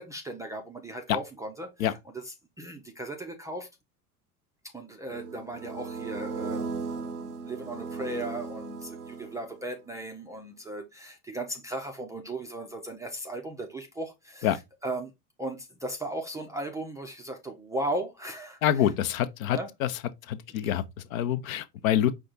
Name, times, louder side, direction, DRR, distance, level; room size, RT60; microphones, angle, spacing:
voice 1, 0.0-3.7 4.7-15.1 15.4-18.9 19.5-19.7 20.6-20.8, right 1 dB, 10° right, 0.3 m, -37 dB
sound 1, 5.1-9.7, right 4 dB, 85° right, 0.6 m, -37 dB
voice 2, 18.6-19.9 20.3-20.8 21.1-22.1, left 11 dB, 65° left, 0.7 m, -26 dB
5.2 x 2.3 x 3.8 m
figure-of-eight pair, 75°, 45 cm